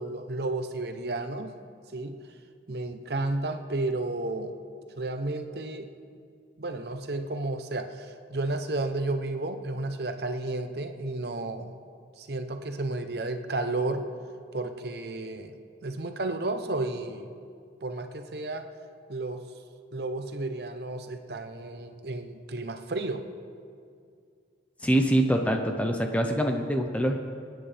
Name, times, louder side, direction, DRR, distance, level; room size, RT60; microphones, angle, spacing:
voice 1, 0.0-1.6 1.9-2.2 2.7-4.6 5.0-5.9 6.6-11.7 12.2-14.1 14.5-15.6 15.8-17.3 17.8-18.7 19.1-19.4 19.9-23.2, right 2 dB, 60° right, 7 dB, 0.8 m, -32 dB
voice 2, 24.8-27.2, right 1 dB, 5° left, 3 dB, 0.8 m, -24 dB
26.0 x 9.2 x 3.4 m, 2.3 s
head